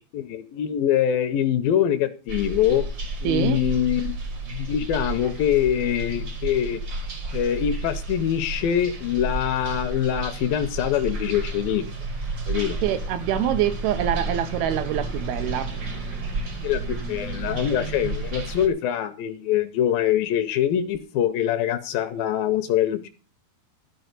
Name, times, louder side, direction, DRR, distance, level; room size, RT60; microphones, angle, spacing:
voice 1, 0.1-2.9 3.2-4.2 4.5-6.8 7.3-11.8 12.5-12.8 16.6-23.1, left 10 dB, 75° left, 2.3 m, -24 dB
sound 1, 2.3-18.7, right 2 dB, 45° right, 1.3 m, -31 dB
voice 2, 3.2-3.6 12.8-15.7, right 10 dB, 80° right, 2.7 m, -25 dB
13.5 x 4.8 x 8.0 m
omnidirectional pair, 4.5 m